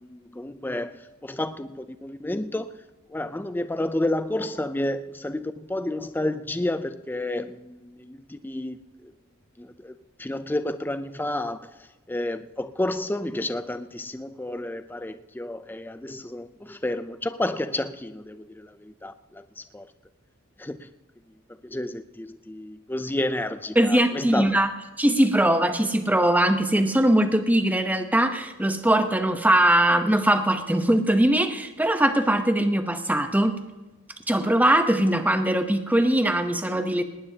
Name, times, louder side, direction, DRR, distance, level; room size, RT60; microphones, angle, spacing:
voice 1, 0.0-9.1 9.6-19.9 20.6-20.9 21.6-24.6, left 1 dB, 10° left, 0.4 m, -31 dB
voice 2, 23.8-24.7 25.0-33.6 34.3-37.0, right 1 dB, 5° right, 0.8 m, -21 dB
19.0 x 18.5 x 2.8 m
head